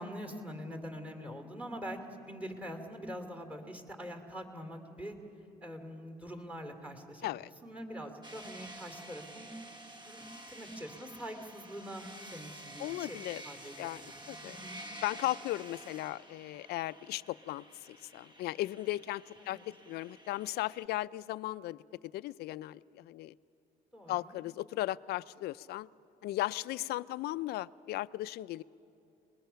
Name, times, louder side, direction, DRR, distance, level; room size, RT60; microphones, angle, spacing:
voice 1, 0.0-2.0 2.3-5.2 5.6-7.3 7.6-9.5 10.1-13.2 13.4-14.8 19.4-19.6 23.9-24.4, equal, 10° right, 6 dB, 2.6 m, -44 dB
sound 1, 8.2-20.9, right 1 dB, 25° right, 1.3 m, -50 dB
voice 2, 12.8-13.5 13.8-14.6 15.0-21.8 22.1-23.3 24.1-25.9 26.2-28.6, left 16 dB, 75° left, 17 dB, 0.4 m, -36 dB
29.0 x 21.0 x 5.7 m, 2.8 s
cardioid pair, 110°, 17 cm